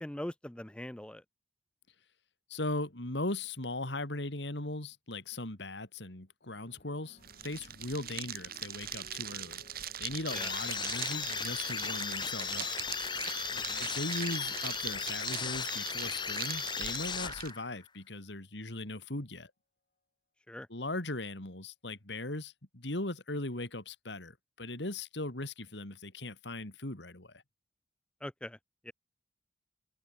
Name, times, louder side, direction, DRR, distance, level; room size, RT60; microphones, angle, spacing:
voice 1, 0.0-1.2 10.3-10.5 13.5-13.9 20.5-20.7 28.2-28.6 28.8-28.9, left 1 dB, 5° left, 0.5 m, -42 dB
voice 2, 2.5-9.6 10.0-12.7 13.8-19.5 20.7-27.4, left 2 dB, 70° left, 3.3 m, -39 dB
sound 1, 6.4-15.0 15.9-16.3, left 1 dB, 50° left, 4.1 m, -62 dB
sound 2, 7.2-17.5, right 10 dB, 55° right, 1.9 m, -41 dB
sound 3, 10.3-17.8, left 6 dB, 25° left, 1.4 m, -36 dB
head